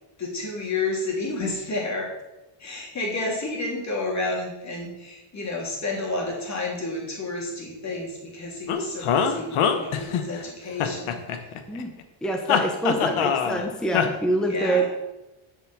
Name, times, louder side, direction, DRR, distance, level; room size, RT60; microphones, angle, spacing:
voice 1, 0.2-2.1 2.6-11.3 12.9-13.1 14.4-14.9, left 2 dB, 35° left, -1 dB, 3.1 m, -30 dB
sound 1, 8.7-10.4 10.8-11.8 12.5-13.6 13.9-14.1, left 7 dB, 80° left, 1.3 m, -23 dB
voice 2, 12.2-14.9, right 1 dB, ahead, 2 dB, 0.9 m, -25 dB
8.0 x 7.0 x 7.6 m, 0.98 s
cardioid pair, 170°, 49 cm